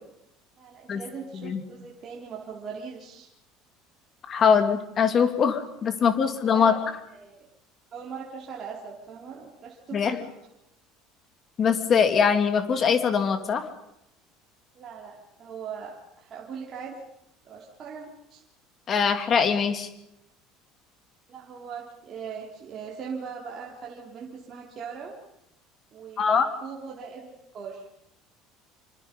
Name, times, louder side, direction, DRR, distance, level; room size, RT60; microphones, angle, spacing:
voice 1, 0.6-3.3 5.9-6.8 7.1-7.5 7.9-10.3 14.7-17.0 17.4-18.4 21.3-25.1 25.9-27.9, right 6 dB, 30° right, -3 dB, 4.2 m, -40 dB
voice 2, 4.3-6.8 9.9-10.1 11.6-13.7 18.9-19.9 26.2-26.5, left 6 dB, 30° left, 7 dB, 2.9 m, -22 dB
28.0 x 26.0 x 5.6 m, 0.83 s
cardioid pair, 165°, 0 cm